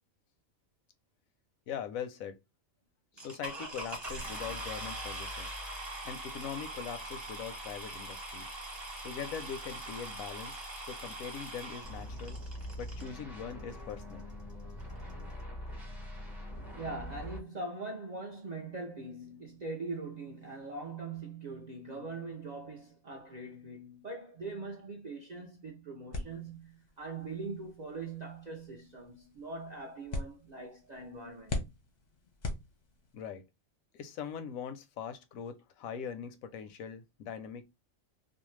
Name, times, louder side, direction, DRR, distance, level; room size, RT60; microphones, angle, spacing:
voice 1, 1.7-2.4 3.2-5.5 6.0-8.5 9.0-10.6 10.9-12.4 12.8-14.3 33.1-33.4 33.9-37.6, left 7 dB, 85° left, 1.0 m, -41 dB
sound 1, 3.2-13.1 13.9-14.0 14.5-14.6 14.8-15.1, right 1 dB, 25° right, 0.9 m, -42 dB
sound 2, 11.8-17.4, equal, ahead, 0.6 m, -43 dB
voice 2, 16.7-31.7, right 3 dB, 60° right, 0.4 m, -42 dB
sound 3, 26.1-33.2, left 2 dB, 45° left, 0.6 m, -43 dB
2.6 x 2.1 x 3.0 m
omnidirectional pair, 1.4 m